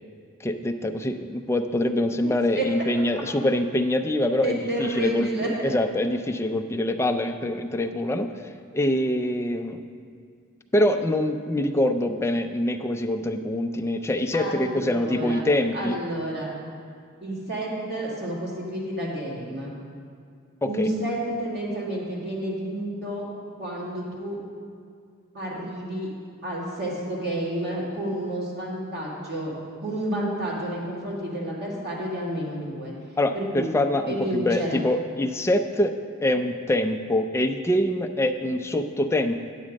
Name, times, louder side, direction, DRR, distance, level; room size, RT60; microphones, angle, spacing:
voice 1, 0.4-8.3 8.7-9.8 10.7-16.0 20.6-20.9 33.2-35.9 36.2-39.4, left 1 dB, 10° left, 6 dB, 0.4 m, -24 dB
voice 2, 2.2-2.6 4.4-5.7 14.3-15.4 15.7-16.5 17.2-19.7 20.6-23.3 23.6-24.4 25.3-26.1 26.4-29.5 29.8-32.9 33.3-33.7 34.0-34.8, right 1 dB, 50° right, -5 dB, 2.3 m, -30 dB
9.9 x 7.3 x 5.2 m, 2.3 s
head